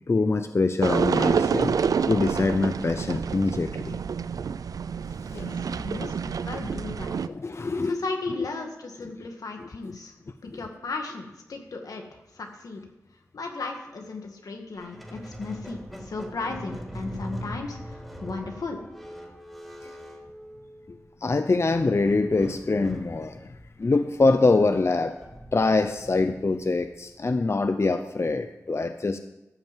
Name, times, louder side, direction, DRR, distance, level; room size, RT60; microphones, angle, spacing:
voice 1, 0.1-1.8 2.1-4.0 5.3-5.8 7.3-8.0 8.3-8.5 19.8-19.9 20.9-23.5 23.8-25.2 25.5-29.2, left 3 dB, 50° left, 8 dB, 0.7 m, -24 dB
sound 1, 0.8-7.3, right 6 dB, 85° right, 0.4 m, -28 dB
voice 2, 5.8-7.2 7.8-10.1 10.4-12.8 13.3-18.8, left 3 dB, 85° left, 3 dB, 1.8 m, -35 dB
Squeak, 14.7-21.1 22.0-27.2, equal, ahead, 3.1 m, -42 dB
13.5 x 6.5 x 7.4 m, 0.98 s
cardioid pair, 45°, 6 cm